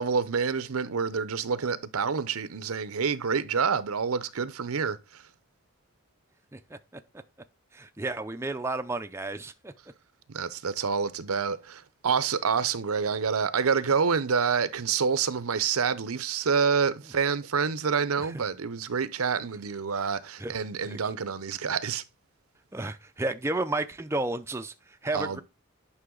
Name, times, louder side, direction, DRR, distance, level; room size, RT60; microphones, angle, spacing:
voice 1, 0.0-5.2 10.3-22.0 25.1-25.4, right 6 dB, 85° right, 0.7 m, -27 dB
voice 2, 7.7-9.7 18.2-18.3 20.4-20.5 20.8-21.0 22.7-25.4, right 2 dB, 10° right, 0.4 m, -32 dB
9.7 x 5.6 x 3.8 m
head